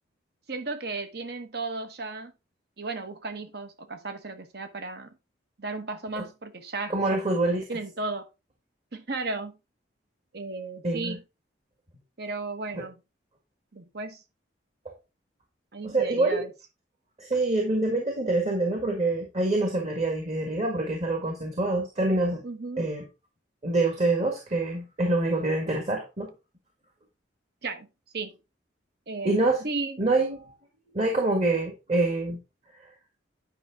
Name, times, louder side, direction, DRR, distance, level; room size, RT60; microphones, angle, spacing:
voice 1, 0.5-2.3 2.8-5.2 5.6-7.2 7.7-8.3 8.9-9.6 10.3-11.2 12.2-13.0 13.7-14.2 15.7-16.5 22.4-22.8 27.6-27.9 28.1-28.3 29.1-30.0, right 3 dB, 60° right, 1.2 m, -35 dB
voice 2, 6.9-7.6 10.8-11.2 12.7-12.8 15.8-16.4 17.2-22.4 22.8-23.0 23.6-26.3 29.2-29.7 30.0-30.5 30.9-32.4, right 2 dB, 35° right, 1.9 m, -26 dB
9.8 x 5.4 x 3.6 m
head